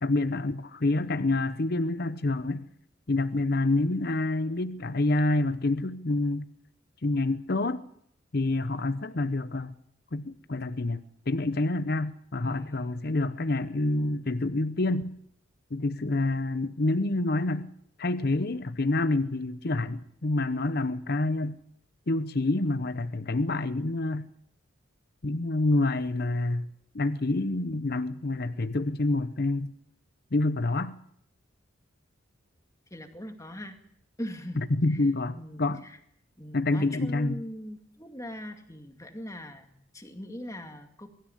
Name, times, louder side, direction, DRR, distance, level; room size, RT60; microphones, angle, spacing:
voice 1, 0.0-2.7 3.1-6.4 7.0-7.9 8.3-9.7 10.1-15.2 15.7-17.7 18.0-21.6 22.1-24.3 25.2-26.7 26.9-29.7 30.3-31.0 34.7-35.8 36.5-37.4, left 2 dB, 50° left, 0.8 m, -27 dB
voice 2, 12.4-13.1 32.9-33.8 34.2-35.0 35.4-36.0 36.4-41.1, equal, 15° left, 2.2 m, -41 dB
22.5 x 13.5 x 10.0 m
head